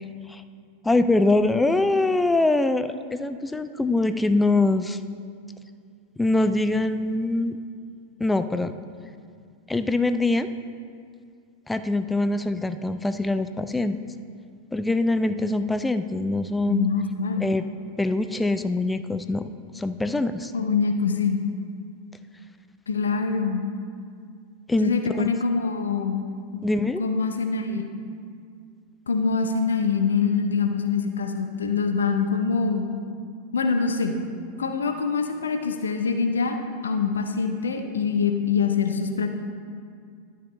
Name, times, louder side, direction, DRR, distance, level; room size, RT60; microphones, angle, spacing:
voice 1, 0.8-5.0 6.2-7.6 8.2-8.7 9.7-10.5 11.7-14.0 14.7-16.9 17.4-17.6 18.0-20.5 24.7-24.9 25.2-25.3 26.6-27.0, left 2 dB, 10° left, 11 dB, 0.3 m, -23 dB
voice 2, 16.7-17.4 20.5-21.4 22.9-23.6 24.8-26.2 26.5-26.6 27.0-27.9 29.1-32.8 33.5-34.2 34.6-36.6 36.8-39.3, left 5 dB, 70° left, 6 dB, 0.6 m, -24 dB
11.5 x 6.7 x 3.2 m, 2.2 s
figure-of-eight pair, 90°, 0 cm